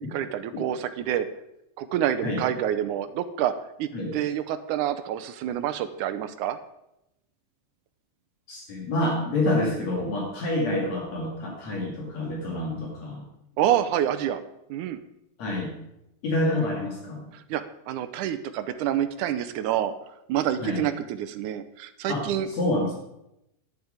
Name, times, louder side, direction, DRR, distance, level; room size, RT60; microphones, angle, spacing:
voice 1, 0.1-1.3 1.8-3.5 3.8-6.6 13.6-14.4 14.7-15.0 17.3-19.9 20.3-22.5, right 11 dB, 75° right, 10 dB, 2.1 m, -27 dB
voice 2, 8.5-13.2 15.4-15.7 16.2-17.3 20.6-20.8 22.1-22.9, left 1 dB, 55° left, -1 dB, 3.3 m, -28 dB
11.0 x 10.5 x 5.0 m, 0.85 s
omnidirectional pair, 3.8 m